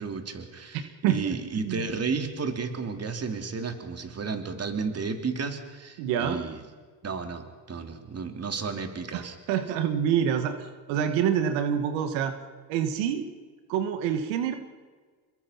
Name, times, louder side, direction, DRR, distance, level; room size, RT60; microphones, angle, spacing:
voice 1, 0.0-6.6 7.0-9.4, right 5 dB, 35° right, 6 dB, 3.1 m, -33 dB
voice 2, 1.0-1.4 1.6-1.9 6.0-6.4 9.1-9.2 9.5-12.3 12.7-13.2 13.7-14.5, right 8 dB, 85° right, 8 dB, 1.8 m, -26 dB
27.0 x 22.0 x 5.8 m, 1.5 s
supercardioid pair, 90°, 43 cm